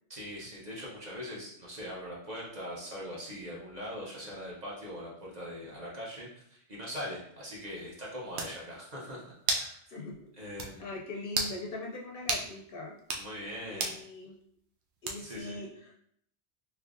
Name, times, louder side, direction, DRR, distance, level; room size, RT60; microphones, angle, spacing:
voice 1, 0.1-9.8 10.4-10.9 13.2-13.9 15.2-15.6, equal, 40° right, -6 dB, 0.9 m, -41 dB
sound 1, 7.9-8.0 8.4-8.6 9.5-9.7 10.1-10.2 10.6-10.7 11.3-11.6 12.3-12.5 13.0-13.3 13.8-14.0 15.1-15.4, right 3 dB, 75° right, 0.8 m, -32 dB
voice 2, 9.9-10.3 10.8-13.0 13.7-14.4 15.0-15.9, left 2 dB, 60° left, -2 dB, 0.7 m, -41 dB
3.4 x 3.0 x 2.5 m, 0.68 s
omnidirectional pair, 1.2 m